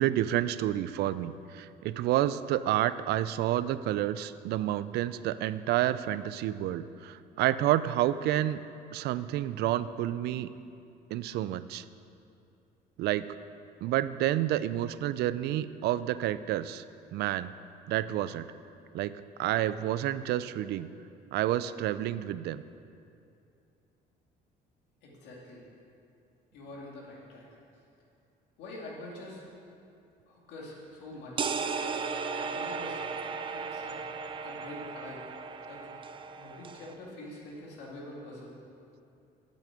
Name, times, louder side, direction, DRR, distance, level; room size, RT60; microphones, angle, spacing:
voice 1, 0.0-8.6 8.9-10.5 11.1-11.8 13.0-13.3 13.8-16.8 17.1-17.5 17.9-18.5 18.9-19.1 19.4-20.9 21.3-22.6, right 13 dB, 75° right, 15 dB, 0.4 m, -29 dB
voice 2, 25.0-25.6 26.5-27.4 28.6-29.4 30.3-31.5 32.4-33.0 33.5-34.0 34.4-35.2 35.7-36.1 36.3-38.5, left 1 dB, 85° left, -3 dB, 2.3 m, -45 dB
sound 1, 31.4-36.9, right 5 dB, 30° right, 0.6 m, -35 dB
8.5 x 6.4 x 8.0 m, 2.6 s
cardioid pair, 110°, 17 cm